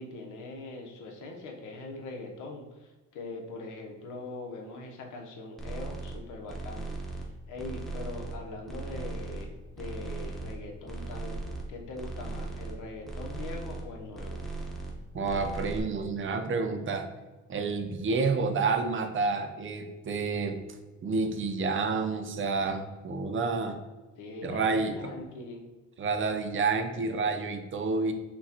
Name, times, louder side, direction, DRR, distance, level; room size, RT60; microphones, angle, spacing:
voice 1, 0.0-6.9 7.2-11.4 11.7-14.4 24.2-25.6, left 2 dB, 85° left, 1 dB, 0.9 m, -42 dB
sound 1, 5.6-6.2 6.5-7.3 7.6-8.4 8.7-9.5 9.8-10.6 10.9-11.7 11.9-12.7 13.0-13.9 14.1-15.0 15.2-15.8, right 3 dB, ahead, 0.8 m, -38 dB
voice 2, 15.1-17.1 17.5-20.6 21.0-23.8 24.4-25.1 26.0-28.1, right 4 dB, 40° right, 6 dB, 0.5 m, -29 dB
5.9 x 2.2 x 2.8 m, 1.2 s
cardioid pair, 90°, 30 cm